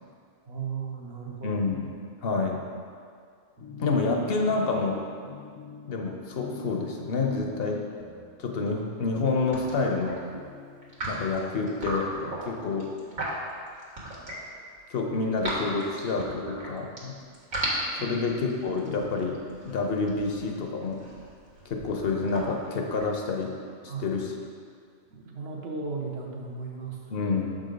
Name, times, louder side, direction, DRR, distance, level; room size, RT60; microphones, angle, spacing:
voice 1, 0.5-1.6 3.6-3.8 18.0-18.2 23.9-24.2 25.1-27.3, right 4 dB, 60° right, -1 dB, 1.1 m, -36 dB
voice 2, 1.4-1.9 2.2-2.6 3.8-5.0 5.9-7.8 8.4-10.2 11.0-12.1 12.4-12.9 14.9-17.1 18.0-19.4 19.6-21.0 21.6-23.5 23.8-24.3 27.1-27.6, left 4 dB, 60° left, 2 dB, 0.9 m, -28 dB
sound 1, 3.6-11.8, left 6 dB, 40° left, 0.5 m, -47 dB
sound 2, 9.1-9.3 9.5-10.2 10.8-14.5 14.9-17.0 17.3-23.4, right 1 dB, 90° right, 1.9 m, -36 dB
7.1 x 3.9 x 5.1 m, 2.2 s
omnidirectional pair, 1.2 m